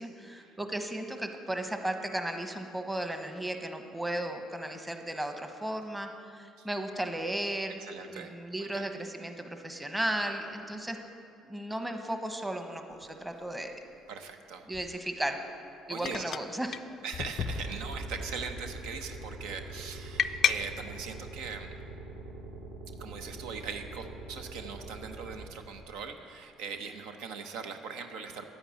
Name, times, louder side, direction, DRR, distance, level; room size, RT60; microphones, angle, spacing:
voice 1, 0.0-7.8 8.1-11.0 11.4-13.8 14.7-15.4 15.9-16.8, right 1 dB, 10° right, 5 dB, 1.2 m, -35 dB
voice 2, 7.9-8.9 14.1-14.7 15.9-16.3 17.0-21.8 23.0-28.5, right 5 dB, 85° right, 6 dB, 0.9 m, -41 dB
sound 1, 13.0-13.1 14.7-15.0 16.0-16.5 16.7-16.8 17.1-18.0 18.4-18.7 20.2-20.6, left 8 dB, 55° left, 0.4 m, -31 dB
sound 2, 17.4-25.4, right 2 dB, 60° right, 2.7 m, -42 dB
10.0 x 9.0 x 8.1 m, 2.4 s
supercardioid pair, 90°, 0 cm